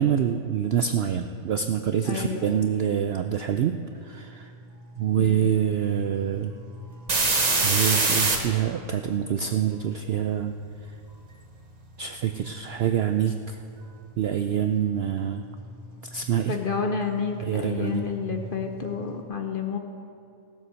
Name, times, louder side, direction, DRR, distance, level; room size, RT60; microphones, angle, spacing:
voice 1, 0.0-3.8 4.0-4.5 5.0-6.5 7.6-10.5 12.0-13.6 14.2-15.4 16.1-16.5 17.4-18.0, right 9 dB, 70° right, 6 dB, 0.6 m, -26 dB
voice 2, 2.0-2.7 5.1-5.6 16.5-19.8, left 5 dB, 45° left, 4 dB, 0.8 m, -30 dB
sound 1, 6.0-6.1 6.5-8.4 16.7-16.8 17.2-18.9, right 3 dB, 30° right, 1.2 m, -24 dB
17.0 x 7.4 x 6.3 m, 2.4 s
omnidirectional pair, 1.5 m